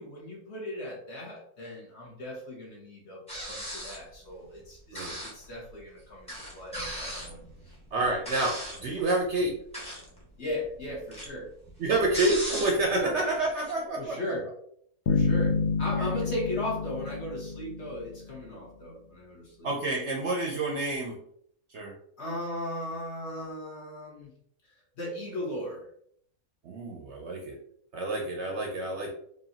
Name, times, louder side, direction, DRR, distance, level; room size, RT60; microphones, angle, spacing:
voice 1, 0.0-7.7 10.4-11.5 12.9-13.1 14.0-14.5 15.1-19.7 22.2-24.3 24.6-25.9, left 1 dB, 50° left, -3 dB, 1.4 m, -37 dB
sound 1, 3.3-4.1 4.9-5.4 5.8-5.9 6.3-8.9 9.6-10.2 10.5-13.0 13.3-13.7, equal, 5° left, 1.0 m, -37 dB
voice 2, 7.9-9.5 11.8-14.2 16.0-16.1 19.6-21.2 21.7-21.9 26.6-27.6 27.9-29.1, right 2 dB, 60° right, 1 dB, 0.8 m, -28 dB
sound 2, 15.1-18.5, left 5 dB, 75° left, 0.5 m, -29 dB
4.9 x 2.6 x 2.7 m, 0.66 s
omnidirectional pair, 1.5 m